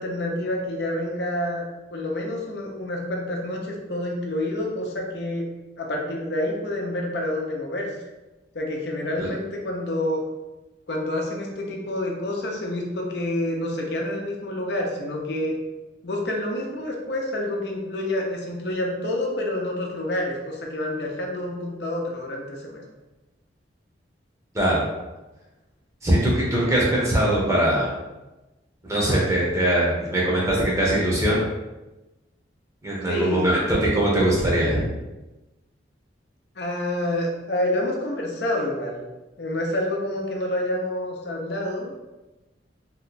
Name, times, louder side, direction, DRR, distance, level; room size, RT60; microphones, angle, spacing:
voice 1, 0.0-1.6 1.9-5.5 5.8-7.9 8.5-10.2 10.9-15.5 16.0-22.8 33.1-33.4 36.6-39.0 39.4-41.9, left 1 dB, 65° left, 0 dB, 0.6 m, -28 dB
voice 2, 26.0-27.9 28.9-31.4 32.8-34.9, right 1 dB, 15° right, -5 dB, 0.8 m, -21 dB
2.9 x 2.2 x 3.9 m, 1.1 s
head